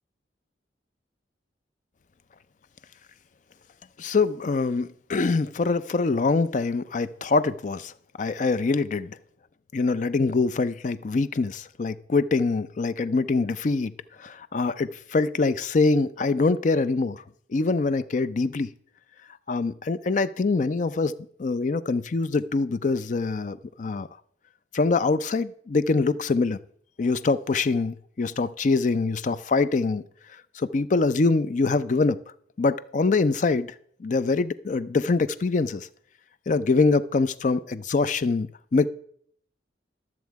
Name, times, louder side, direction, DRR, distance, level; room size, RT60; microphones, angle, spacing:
voice 1, 4.0-9.2 9.7-13.9 14.2-17.2 17.5-18.7 19.5-21.1 21.4-24.1 24.7-26.6 27.0-30.0 30.6-32.2 32.6-33.7 34.0-35.9 36.5-38.9, left 3 dB, 45° left, 0.4 m, -24 dB
12.5 x 7.2 x 4.6 m
head